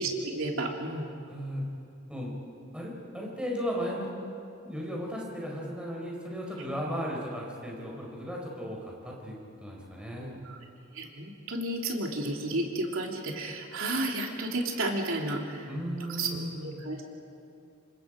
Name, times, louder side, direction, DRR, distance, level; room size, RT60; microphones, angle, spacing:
voice 1, 0.0-1.1 10.2-10.6 10.9-15.7 16.1-17.0, right 2 dB, 75° right, 0 dB, 3.1 m, -32 dB
voice 2, 1.3-1.7 2.1-2.4 2.7-4.1 4.6-10.3 15.7-16.8, equal, 5° right, -3 dB, 4.7 m, -36 dB
28.0 x 25.0 x 5.2 m, 2.6 s
head